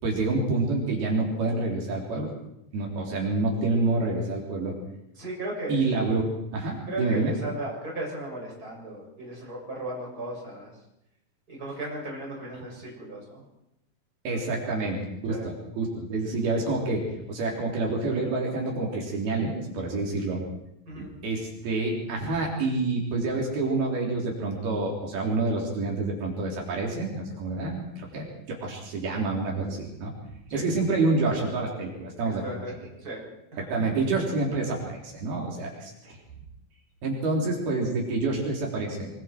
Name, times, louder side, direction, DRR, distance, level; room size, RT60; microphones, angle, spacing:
voice 1, 0.0-2.3 2.7-4.7 5.7-7.3 14.3-20.4 21.0-30.1 30.5-32.9 33.6-34.8 35.0-36.2 37.0-39.1, right 3 dB, 80° right, -1 dB, 5.8 m, -28 dB
voice 2, 5.2-5.9 6.9-10.7 11.5-13.4 15.3-15.5 20.9-21.1 30.5-30.6 32.2-32.7 33.0-33.2 33.5-33.9, right 1 dB, 25° right, -3 dB, 7.4 m, -36 dB
25.0 x 24.0 x 4.6 m, 0.84 s
omnidirectional pair, 4.3 m